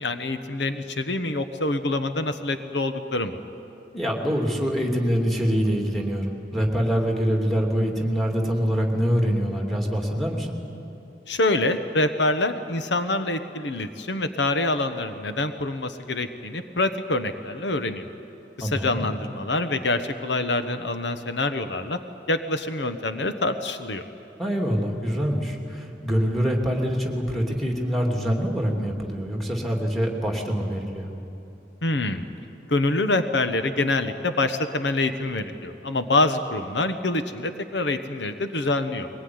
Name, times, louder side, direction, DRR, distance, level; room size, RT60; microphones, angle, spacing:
voice 1, 0.0-3.4 11.3-18.1 18.6-22.0 22.3-24.0 31.8-32.3 32.7-39.1, left 2 dB, 80° left, 9 dB, 1.1 m, -26 dB
voice 2, 3.9-10.5 18.6-19.0 24.4-31.1, equal, ahead, 0 dB, 2.7 m, -25 dB
22.5 x 19.0 x 9.6 m, 2.9 s
head